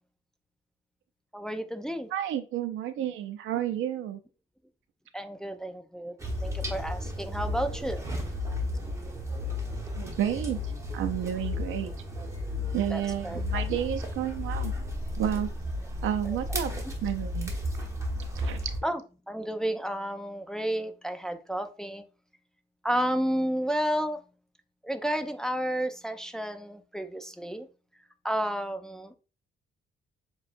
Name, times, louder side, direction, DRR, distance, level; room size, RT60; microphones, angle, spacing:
voice 1, 1.3-2.1 5.1-6.2 6.4-8.0 12.9-13.6 18.8-19.0 19.3-22.0 22.8-24.2 24.8-27.7 28.2-29.1, equal, 5° left, 0.4 m, -31 dB
voice 2, 2.1-4.2 10.0-10.6 10.9-11.9 12.7-14.7 15.2-15.5 16.0-16.7 17.0-17.5 18.3-18.7, right 10 dB, 80° right, 0.6 m, -31 dB
sound 1, 6.2-18.8, left 1 dB, 15° right, 1.1 m, -33 dB
6.8 x 2.4 x 2.6 m
cardioid pair, 90°, 20 cm